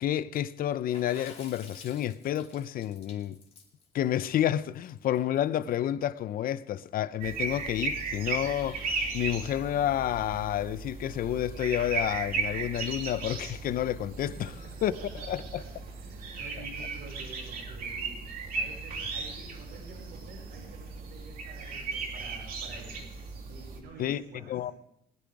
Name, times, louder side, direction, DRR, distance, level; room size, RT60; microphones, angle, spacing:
voice 1, 0.0-3.4 3.9-14.5 14.8-14.9 15.3-15.6 24.0-24.2 24.5-24.7, left 11 dB, 60° left, 0.6 m, -30 dB
Water / Splash splatter, 0.9-5.4, left 4 dB, 35° left, 2.8 m, -51 dB
sound 1, 7.2-23.8, right 4 dB, 60° right, 2.8 m, -36 dB
voice 2, 14.3-15.7 16.0-18.1 18.5-23.1 23.4-24.7, right 3 dB, 75° right, 5.1 m, -49 dB
20.0 x 10.0 x 4.8 m
cardioid pair, 110°, 17 cm